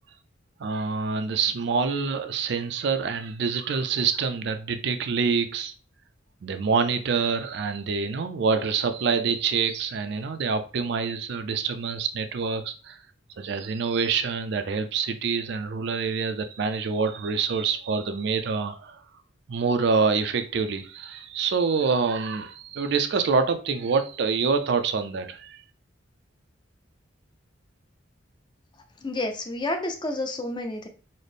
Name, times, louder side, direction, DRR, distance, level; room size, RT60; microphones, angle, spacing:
voice 1, 0.6-5.7 6.4-13.0 13.4-19.0 19.5-25.6, right 5 dB, 60° right, 0.4 m, -26 dB
voice 2, 29.0-30.9, left 2 dB, 25° left, 0.5 m, -30 dB
4.1 x 2.0 x 3.3 m
head